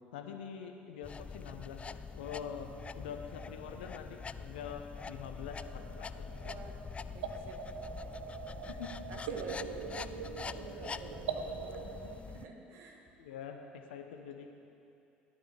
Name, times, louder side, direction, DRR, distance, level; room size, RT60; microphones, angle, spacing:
voice 1, 0.1-6.5 8.7-8.9 13.2-14.5, left 7 dB, 70° left, 5 dB, 0.8 m, -45 dB
sound 1, 1.0-12.5, left 5 dB, 20° left, 0.3 m, -45 dB
sound 2, 5.5-12.2, right 6 dB, 70° right, 0.6 m, -43 dB
voice 2, 6.4-7.6 7.8-8.7 9.1-13.0, right 3 dB, 55° right, 2 dB, 1.6 m, -49 dB
16.5 x 11.0 x 3.5 m, 2.6 s
figure-of-eight pair, 60°, 6 cm